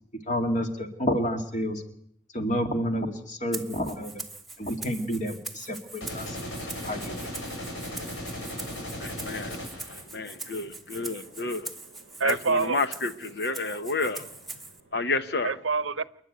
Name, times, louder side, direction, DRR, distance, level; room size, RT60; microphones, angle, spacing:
voice 1, 0.1-1.8 2.3-4.1 4.6-6.4 6.8-7.2, equal, 40° left, 2.3 m, -29 dB
Rattle (instrument), 3.5-14.8, right 3 dB, ahead, 1.2 m, -42 dB
sound 1, 6.0-10.0, left 1 dB, 75° left, 7.5 m, -36 dB
voice 2, 9.0-9.6 9.9-11.7 12.2-14.3 14.9-15.5, left 3 dB, 55° left, 1.1 m, -30 dB
voice 3, 11.0-12.8 15.4-16.0, right 5 dB, 90° right, 0.8 m, -29 dB
29.0 x 9.9 x 9.4 m
head